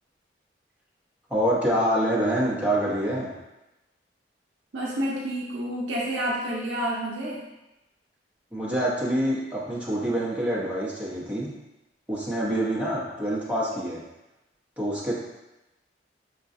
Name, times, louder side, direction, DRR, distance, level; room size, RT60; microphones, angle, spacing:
voice 1, 1.3-3.3 8.5-11.5 12.1-14.0 14.8-15.1, right 1 dB, 10° right, -8 dB, 0.8 m, -26 dB
voice 2, 4.7-7.4, equal, 80° right, -4 dB, 0.5 m, -29 dB
4.7 x 2.3 x 2.6 m, 0.97 s
head